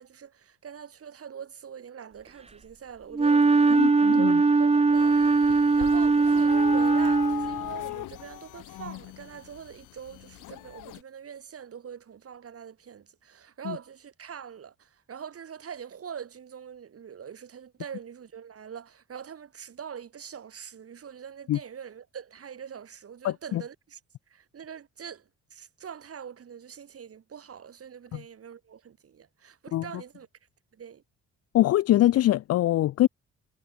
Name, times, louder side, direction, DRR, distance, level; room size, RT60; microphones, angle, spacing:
voice 1, 0.0-3.8 4.1-4.3 4.6-24.0 24.3-30.3 30.7-31.0, right 7 dB, 50° right, 3.5 m, -43 dB
Wind instrument woodwind instrument, 3.1-7.7, right 3 dB, 20° right, 1.5 m, -21 dB
voice 2, 3.8-4.4 13.7-13.8 21.5-21.6 23.2-23.6 28.1-28.2 29.7-29.8 31.5-33.1, left 14 dB, 55° left, 0.5 m, -23 dB
sound 1, 4.9-11.0, left 16 dB, 85° left, 1.5 m, -39 dB
cardioid pair, 90°, 30 cm